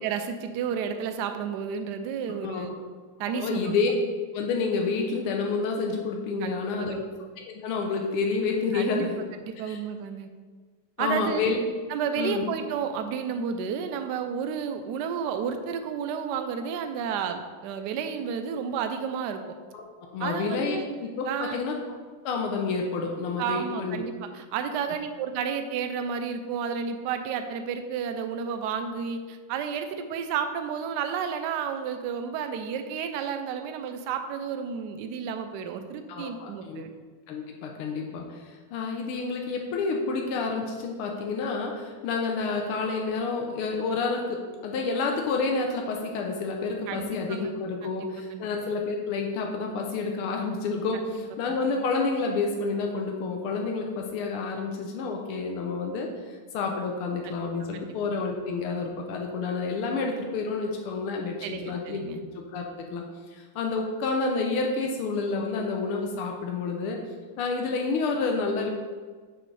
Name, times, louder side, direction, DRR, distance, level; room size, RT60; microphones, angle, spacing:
voice 1, 0.0-2.7 3.2-3.8 6.4-7.1 8.7-9.1 9.4-10.3 11.0-11.4 11.9-19.6 20.2-20.8 21.3-21.6 23.4-36.9 46.9-47.4 48.3-48.5 51.5-51.6 57.2-57.4 57.7-57.9 61.4-62.2, right 7 dB, 80° right, 7 dB, 0.9 m, -31 dB
voice 2, 2.4-2.8 3.3-3.9 4.3-7.0 7.4-9.1 9.7-9.8 11.0-11.6 12.2-12.4 19.7-19.9 20.1-21.7 22.2-24.0 36.1-36.8 37.3-62.0 62.4-63.0 63.3-67.0 67.4-68.7, left 4 dB, 85° left, 1 dB, 1.6 m, -29 dB
7.4 x 6.1 x 3.3 m, 1.5 s
omnidirectional pair, 2.4 m